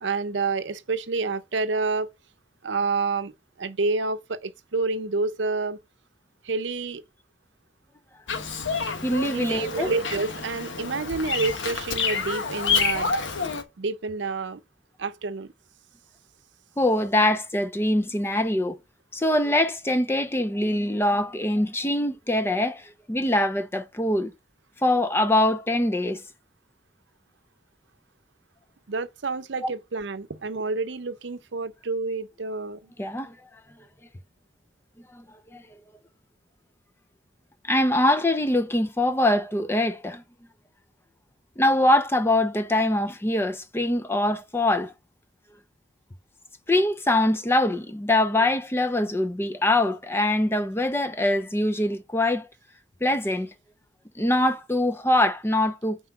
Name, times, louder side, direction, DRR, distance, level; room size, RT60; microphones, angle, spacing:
voice 1, 0.0-2.1 2.6-3.3 3.6-5.8 6.4-7.0 9.2-13.1 13.8-14.6 15.0-15.5 28.9-32.9 48.4-48.5, right 4 dB, 70° right, 0.7 m, -28 dB
Bird vocalization bird call bird song, 8.3-13.6, left 5 dB, 85° left, 1.1 m, -28 dB
voice 2, 9.0-9.9 16.8-18.8 19.1-24.3 24.8-26.2 29.6-29.7 33.0-33.4 35.1-35.2 35.5-35.6 37.6-40.2 41.6-44.9 46.7-52.5 53.0-53.5 54.2-56.0, left 1 dB, 15° left, 0.5 m, -23 dB
5.8 x 4.3 x 5.9 m
head